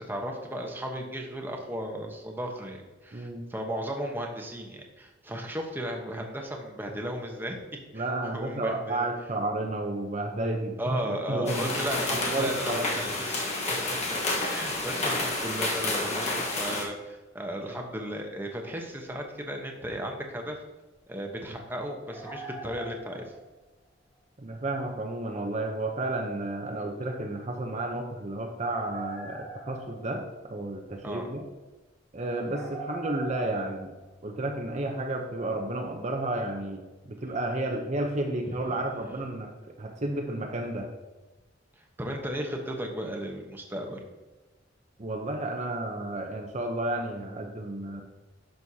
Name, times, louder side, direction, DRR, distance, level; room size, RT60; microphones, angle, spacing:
voice 1, 0.0-7.6 7.9-9.1 10.8-13.5 14.5-20.6 21.1-23.3 31.0-31.3 38.5-38.6 41.8-44.0, equal, 10° right, 1 dB, 1.0 m, -35 dB
voice 2, 3.1-3.4 7.9-11.8 12.1-12.8 24.4-30.2 30.5-31.4 32.1-33.9 34.2-39.5 39.8-40.9 45.0-48.0, right 2 dB, 35° right, 2 dB, 0.7 m, -32 dB
sound 1, 11.5-16.8, left 2 dB, 35° left, 1.3 m, -30 dB
sound 2, 17.7-18.1 19.6-19.7 22.1-23.7 27.0-27.1 28.7-30.4 32.3-34.7, right 2 dB, 10° left, 1.2 m, -42 dB
11.0 x 6.3 x 2.8 m, 1.1 s
head